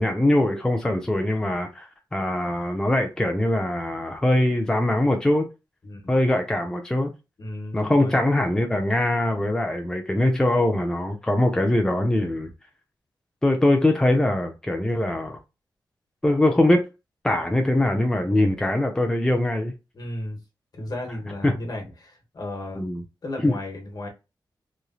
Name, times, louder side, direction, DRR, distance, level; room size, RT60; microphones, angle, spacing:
voice 1, 0.0-5.5 6.1-7.1 7.7-12.5 13.4-15.4 16.2-16.8 17.2-19.7 21.4-21.5 22.8-23.0 23.4-23.5, left 1 dB, 10° left, 0.4 m, -22 dB
voice 2, 7.4-8.2 19.9-20.4 20.7-22.8 23.2-24.1, left 1 dB, 50° left, 1.1 m, -34 dB
3.1 x 2.6 x 2.3 m
wide cardioid pair, 135°, 8 cm